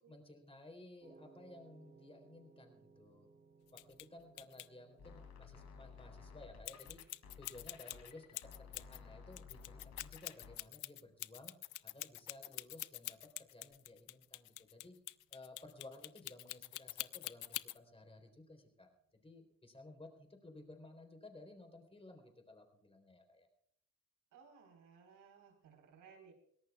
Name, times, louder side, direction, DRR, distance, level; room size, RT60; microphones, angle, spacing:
voice 1, 0.1-3.3 3.7-7.0 7.4-8.3 8.6-11.6 11.8-15.0 15.3-23.5, left 2 dB, 20° left, 5 dB, 3.7 m, -56 dB
sound 1, 1.0-19.3, right 4 dB, 40° right, 3.3 m, -68 dB
sound 2, 3.7-4.0 4.4-4.7 6.6-9.0 9.3-17.8, left 18 dB, 90° left, 0.5 m, -45 dB
sound 3, 5.0-10.6, left 5 dB, 65° left, 3.2 m, -55 dB
voice 2, 24.3-26.3, right 6 dB, 85° right, 2 dB, 4.3 m, -61 dB
22.5 x 17.5 x 2.4 m, 0.68 s
cardioid pair, 90°, 30 cm